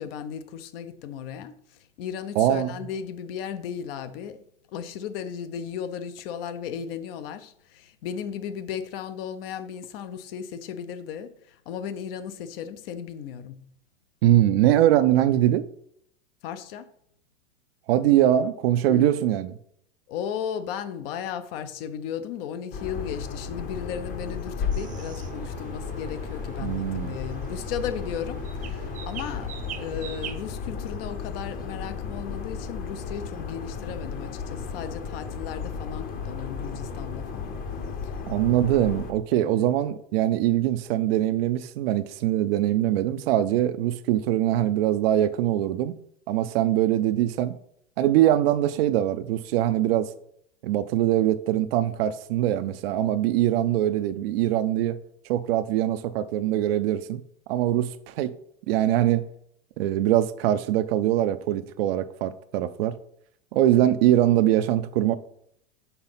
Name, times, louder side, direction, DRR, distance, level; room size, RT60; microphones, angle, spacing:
voice 1, 0.0-1.5 2.0-4.4 4.7-13.6 16.4-16.9 18.9-19.2 20.1-37.6 38.0-38.2 38.7-39.0 39.3-39.8, left 8 dB, 70° left, 0.8 m, -35 dB
voice 2, 2.4-2.8 14.2-15.6 17.9-19.5 26.6-27.2 38.3-45.9 46.3-47.6 48.0-50.1 50.6-55.0 55.3-57.2 57.5-58.3 58.7-59.2 59.8-63.0 63.5-65.1, right 12 dB, 75° right, 0.5 m, -22 dB
sound 1, 22.7-39.1, left 6 dB, 30° left, 0.8 m, -34 dB
sound 2, 24.7-30.4, right 7 dB, 25° right, 0.6 m, -41 dB
5.7 x 3.9 x 5.7 m
supercardioid pair, 130°, 30 cm